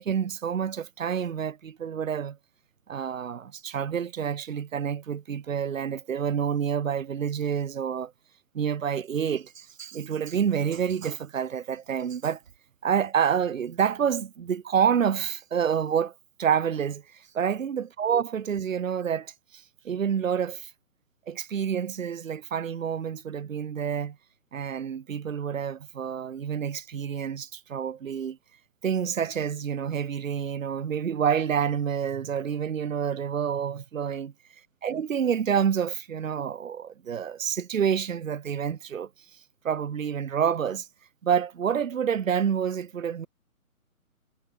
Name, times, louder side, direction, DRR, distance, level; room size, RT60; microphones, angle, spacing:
voice 1, 0.0-2.4 2.9-8.1 8.5-12.4 12.8-16.1 16.4-20.7 21.3-24.2 24.5-28.4 28.8-34.3 34.8-39.1 39.6-40.9 41.2-43.3, right 8 dB, 65° right, 1.2 m, -28 dB
hypercardioid pair, 170°, 43 cm